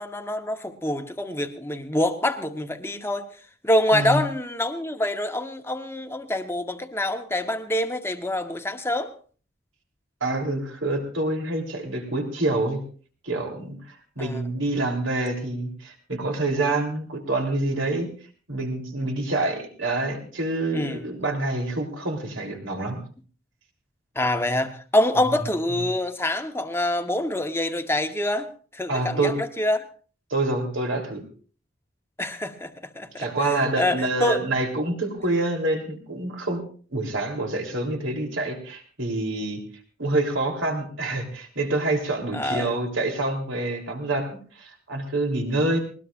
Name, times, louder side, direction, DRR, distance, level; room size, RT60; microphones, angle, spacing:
voice 1, 0.0-3.2 3.6-9.1 14.2-14.4 20.7-21.0 24.1-28.5 28.7-29.8 32.2-34.4 42.3-42.8, left 1 dB, 10° left, 7 dB, 1.0 m, -26 dB
voice 2, 3.9-4.2 10.2-12.8 13.2-18.1 18.5-23.0 28.9-29.4 30.3-31.2 33.2-36.6 36.9-39.6 40.0-45.8, right 2 dB, 75° right, 2 dB, 3.5 m, -27 dB
20.0 x 20.0 x 2.5 m, 0.40 s
head